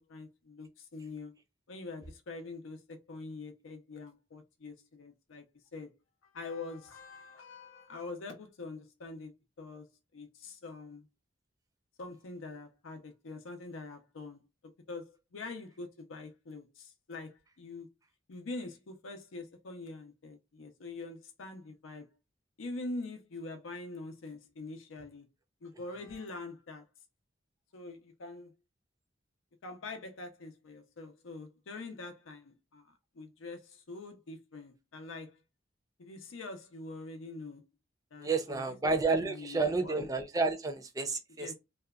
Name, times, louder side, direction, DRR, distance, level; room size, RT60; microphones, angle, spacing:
voice 1, 0.0-1.4 1.7-5.4 5.7-5.9 6.2-9.3 9.6-9.9 10.1-11.0 12.0-14.4 14.9-17.9 18.3-22.1 22.6-25.3 25.6-26.8 27.7-28.5 29.6-35.4 36.0-37.6 38.1-38.6 39.1-40.1 41.4-41.5, left 3 dB, 90° left, 0.5 m, -44 dB
voice 2, 38.2-41.5, right 3 dB, 20° right, 0.4 m, -30 dB
2.7 x 2.1 x 2.3 m
head